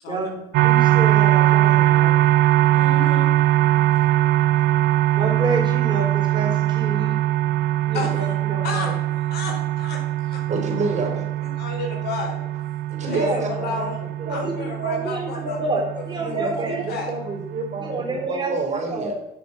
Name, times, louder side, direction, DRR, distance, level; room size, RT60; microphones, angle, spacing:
voice 1, 0.1-2.2 5.1-7.1 7.8-8.9 13.1-13.4 14.3-17.1 17.8-19.1, right 2 dB, 25° right, 1 dB, 3.7 m, -29 dB
sound 1, 0.5-18.3, right 14 dB, 75° right, 0.5 m, -21 dB
voice 2, 2.7-3.3 7.9-8.1 8.6-8.9 9.3-10.4 11.5-12.4 13.0-14.0 14.3-15.6 16.1-17.1, left 3 dB, 70° left, 1 dB, 3.9 m, -32 dB
voice 3, 10.5-11.3 12.9-13.9 14.2-14.5 16.2-19.1, right 3 dB, 45° right, 1 dB, 3.9 m, -29 dB
9.8 x 6.6 x 5.6 m, 0.88 s
cardioid pair, 110°, 17 cm